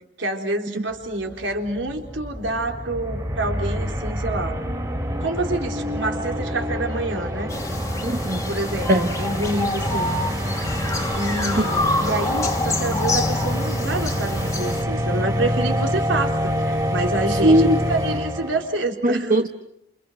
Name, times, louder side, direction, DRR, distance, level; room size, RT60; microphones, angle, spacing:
voice 1, 0.2-4.6 5.2-7.5 8.5-10.1 11.1-19.5, right 2 dB, 85° right, 4.0 m, -27 dB
sound 1, 1.0-1.1 1.3-18.8, equal, 20° right, 3.3 m, -26 dB
sound 2, 7.5-14.8, left 2 dB, 15° left, 1.6 m, -27 dB
voice 2, 8.0-8.5 8.9-9.1 17.4-17.8 19.0-19.5, right 1 dB, 45° right, 0.9 m, -18 dB
29.5 x 28.0 x 6.4 m
head